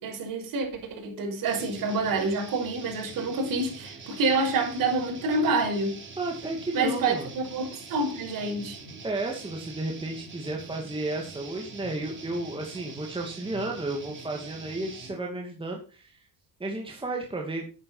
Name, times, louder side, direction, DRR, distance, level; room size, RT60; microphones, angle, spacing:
voice 1, 0.0-5.9 6.7-8.8, right 3 dB, 55° right, 5.7 m, -27 dB
sound 1, 1.5-15.2, right 4 dB, 30° right, 3.9 m, -44 dB
voice 2, 6.2-7.3 9.0-16.3 16.6-17.7, right 2 dB, 15° right, 2.4 m, -33 dB
11.0 x 9.7 x 5.5 m
cardioid pair, 110°, 39 cm